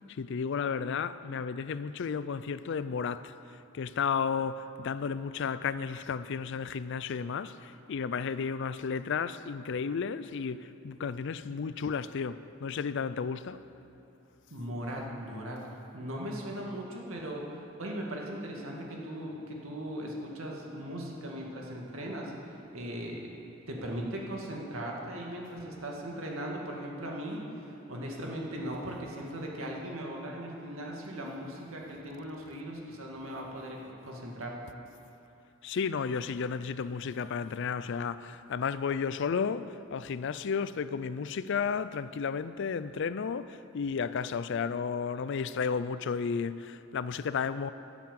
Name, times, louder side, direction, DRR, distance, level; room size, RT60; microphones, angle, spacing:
voice 1, 0.1-3.3 3.7-13.6 35.6-47.7, left 6 dB, 60° left, 0.4 m, -33 dB
voice 2, 14.5-15.6 15.9-22.3 22.7-23.3 23.7-34.6, right 1 dB, 80° right, 2.1 m, -38 dB
13.0 x 7.3 x 7.5 m
head